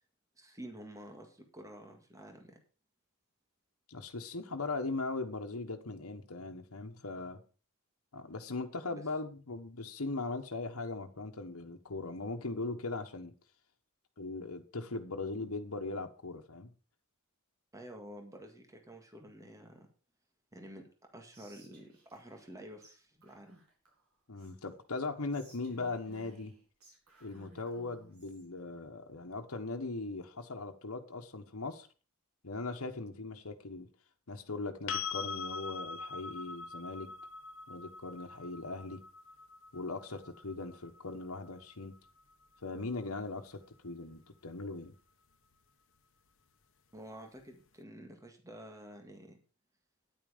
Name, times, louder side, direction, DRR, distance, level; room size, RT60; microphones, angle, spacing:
voice 1, 0.4-2.6 8.9-9.0 17.7-19.9 20.5-20.9 21.1-23.6 46.9-49.4, equal, 15° right, 4 dB, 1.9 m, -50 dB
voice 2, 3.9-7.4 8.1-13.3 14.2-16.7 24.3-26.5 27.2-31.9 32.4-33.9 34.3-37.1 37.7-39.0 39.7-41.9 42.6-44.9, left 3 dB, 80° left, 3 dB, 1.3 m, -39 dB
Whispering, 21.3-22.5 22.8-23.0 23.2-24.7 25.3-28.5, right 1 dB, 85° right, 4.4 m, -60 dB
sound 1, 34.9-42.7 45.5-45.6, left 5 dB, 65° left, 1.1 m, -43 dB
9.8 x 9.2 x 5.1 m, 0.36 s
head